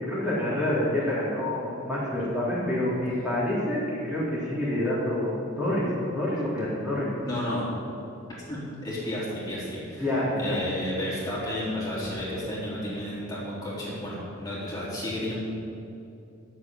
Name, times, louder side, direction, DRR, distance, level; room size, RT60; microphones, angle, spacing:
voice 1, 0.0-7.4 10.0-10.7, left 1 dB, 5° right, -10 dB, 3.5 m, -27 dB
voice 2, 7.2-7.7 8.5-10.1 10.4-15.4, left 1 dB, 20° left, -9 dB, 3.8 m, -32 dB
11.0 x 7.5 x 9.7 m, 2.7 s
head